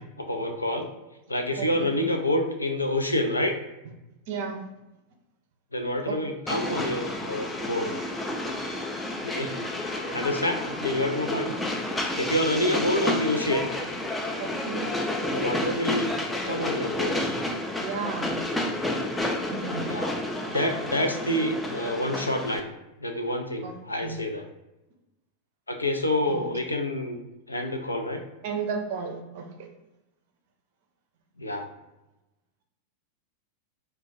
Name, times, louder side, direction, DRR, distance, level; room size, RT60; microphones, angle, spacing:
voice 1, 0.2-0.9 1.3-3.5 5.7-7.9 9.2-9.5 10.1-11.5 12.2-13.7 15.3-16.1 16.4-17.2 19.8-20.1 20.4-22.7 23.0-24.5 25.7-27.2 27.5-28.2 31.4-31.7, left 1 dB, 80° left, 4 dB, 0.4 m, -27 dB
voice 2, 1.6-1.9 4.3-4.7 6.1-6.2 14.4-14.9 17.8-18.4 19.5-19.8 23.6-23.7 24.0-24.2 26.3-26.4 28.4-29.7, right 5 dB, 50° right, 4 dB, 0.5 m, -33 dB
Train, 6.5-22.6, left 1 dB, 10° left, 0.4 m, -30 dB
2.3 x 2.1 x 3.9 m, 0.97 s
figure-of-eight pair, 90°, 0 cm